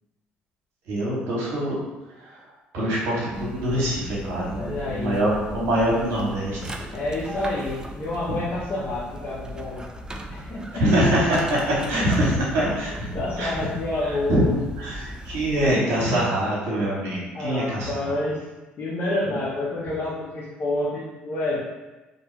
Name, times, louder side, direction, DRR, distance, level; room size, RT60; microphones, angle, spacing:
voice 1, 0.9-1.7 2.2-2.3 2.7-6.6 8.3-8.4 10.8-13.1 13.4-13.7 14.3-14.4 14.8-17.9, right 1 dB, 75° right, -5 dB, 1.0 m, -24 dB
sound 1, 3.3-15.7, equal, 15° right, 0.3 m, -38 dB
voice 2, 4.5-5.2 6.9-9.8 10.3-10.8 12.6-12.9 13.1-14.6 15.5-15.9 17.3-18.5 18.8-21.6, left 2 dB, 50° left, -6 dB, 0.6 m, -28 dB
2.6 x 2.2 x 3.0 m, 1.1 s
hypercardioid pair, 60°, 4 cm